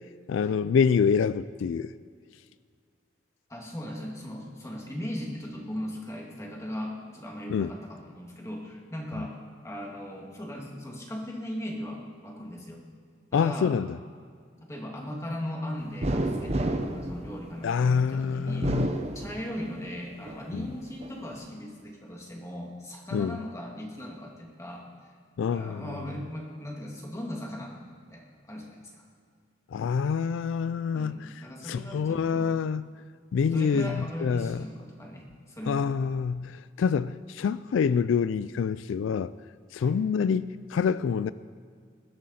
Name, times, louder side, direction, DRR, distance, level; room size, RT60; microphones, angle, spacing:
voice 1, 0.3-1.9 7.5-7.7 13.3-13.9 17.6-18.9 20.5-20.7 23.1-23.4 25.4-25.9 29.7-31.3 31.6-32.9 33.3-34.6 35.7-39.3 39.7-41.3, left 6 dB, 80° left, 0.3 m, -26 dB
voice 2, 3.5-9.4 9.6-12.8 13.3-13.8 14.6-24.9 25.5-27.8 28.1-29.0 30.9-32.6 33.5-35.9 39.8-40.0, equal, 15° left, 2.3 m, -38 dB
sound 1, 16.0-17.9 18.5-19.8 20.3-21.1, right 1 dB, 35° right, 0.8 m, -30 dB
20.5 x 13.0 x 4.2 m
head